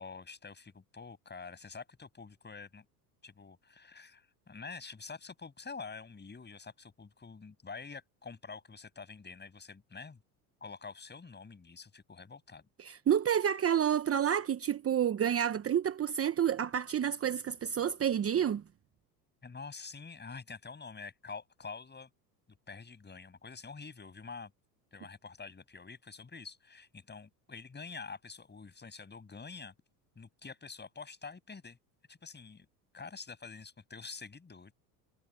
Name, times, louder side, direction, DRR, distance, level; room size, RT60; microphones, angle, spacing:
voice 1, 0.0-2.9 3.2-10.2 10.6-12.7 19.4-22.1 22.7-24.5 24.9-29.7 30.2-31.8 32.1-32.7 32.9-34.7, left 4 dB, 20° left, 6.8 m, -47 dB
voice 2, 12.8-18.6, right 9 dB, 30° right, 1.1 m, -29 dB
hypercardioid pair, 85°, 49 cm